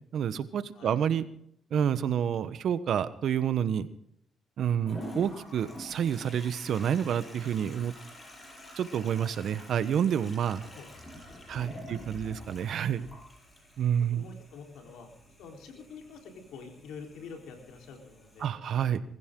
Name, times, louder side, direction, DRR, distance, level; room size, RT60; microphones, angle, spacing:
voice 1, 0.1-1.3 1.7-3.9 4.6-7.9 8.8-10.6 11.5-13.0 13.8-14.2 18.4-19.0, right 8 dB, 65° right, 13 dB, 1.1 m, -29 dB
Toilet flush, 4.9-18.5, left 1 dB, 30° left, 7.8 m, -48 dB
voice 2, 14.1-15.1 15.4-18.5, left 5 dB, 85° left, 3 dB, 3.8 m, -46 dB
22.0 x 15.0 x 3.8 m, 0.70 s
cardioid pair, 90°, 0 cm